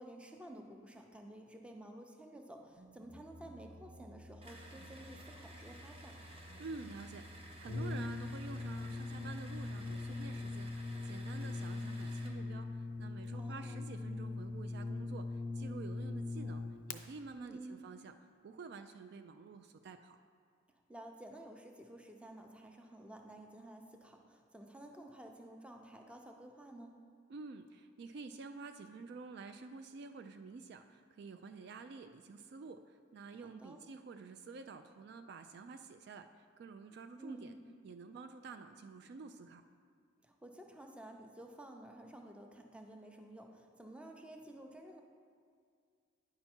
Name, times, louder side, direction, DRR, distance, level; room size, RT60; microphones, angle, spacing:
voice 1, 0.0-6.3 13.3-13.9 17.4-17.8 20.9-27.0 33.3-33.8 37.2-37.7 40.2-45.0, right 1 dB, 5° right, 3 dB, 0.6 m, -52 dB
sound 1, 2.5-11.3, equal, 85° right, 1.5 m, -56 dB
sound 2, 4.4-12.4, right 1 dB, 30° right, 0.9 m, -55 dB
voice 2, 6.6-18.1 18.4-20.2 27.3-36.3 36.6-37.5 37.8-39.6, right 4 dB, 55° right, 8 dB, 0.3 m, -49 dB
Brass instrument, 7.6-17.0, left 3 dB, 40° left, 0.4 m, -41 dB
9.6 x 5.7 x 4.3 m, 2.2 s
head